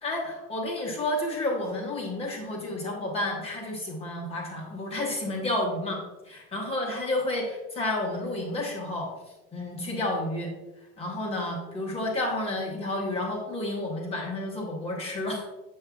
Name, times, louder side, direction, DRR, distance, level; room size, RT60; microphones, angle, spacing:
voice 1, 0.0-9.1 9.5-10.5 11.0-15.5, left 1 dB, 20° left, -2 dB, 1.0 m, -31 dB
7.4 x 7.0 x 2.3 m, 1.1 s
supercardioid pair, 165°, 32 cm